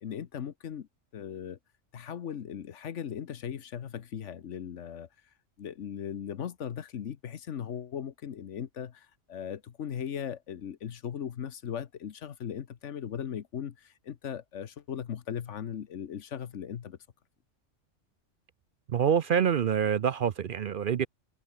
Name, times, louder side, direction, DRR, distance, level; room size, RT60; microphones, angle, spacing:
voice 1, 0.0-1.6 1.9-5.1 5.6-17.0, left 8 dB, 80° left, 1.3 m, -38 dB
voice 2, 18.9-21.1, right 8 dB, 55° right, 0.7 m, -26 dB
omnidirectional pair, 1.2 m